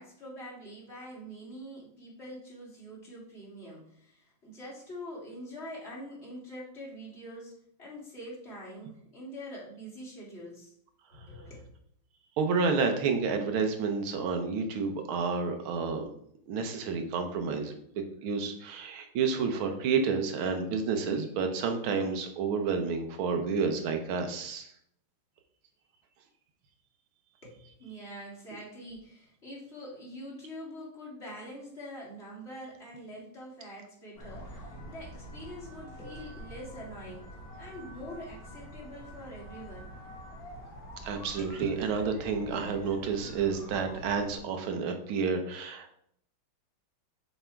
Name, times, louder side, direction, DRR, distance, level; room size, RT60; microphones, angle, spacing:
voice 1, 0.0-10.7 11.1-11.7 27.4-39.9 41.4-41.5, equal, 30° left, -6 dB, 2.3 m, -45 dB
voice 2, 12.4-16.1 16.5-17.8 18.2-24.7 41.0-45.9, right 5 dB, 80° right, 6 dB, 1.6 m, -30 dB
sound 1, 34.1-44.4, equal, 50° left, 2.0 m, -46 dB
6.7 x 3.4 x 4.4 m, 0.68 s
omnidirectional pair, 2.3 m